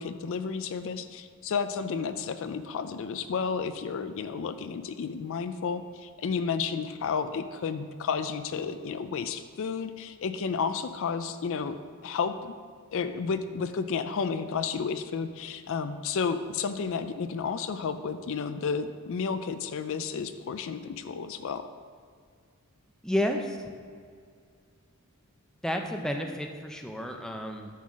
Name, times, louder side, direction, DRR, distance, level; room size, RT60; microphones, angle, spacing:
voice 1, 0.0-11.8 12.0-12.5 12.9-21.7, left 5 dB, 60° left, 10 dB, 0.4 m, -32 dB
voice 2, 23.0-23.6 25.6-27.7, equal, 5° left, 3 dB, 0.5 m, -31 dB
8.4 x 4.0 x 6.1 m, 2.1 s
head